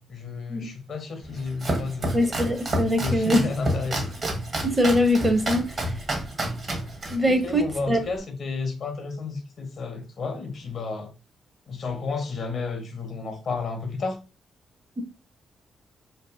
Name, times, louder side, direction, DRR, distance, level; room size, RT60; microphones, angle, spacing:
voice 1, 0.0-2.3 3.0-4.1 7.2-11.1 11.7-14.2, left 4 dB, 65° left, 0.6 m, -32 dB
Domestic sounds home sounds, 1.2-8.2, right 1 dB, 50° right, 1.0 m, -30 dB
voice 2, 2.1-3.5 4.6-5.6 7.1-8.0, left 1 dB, 25° right, 0.6 m, -22 dB
2.7 x 2.6 x 2.3 m
hypercardioid pair, 50°, 0 cm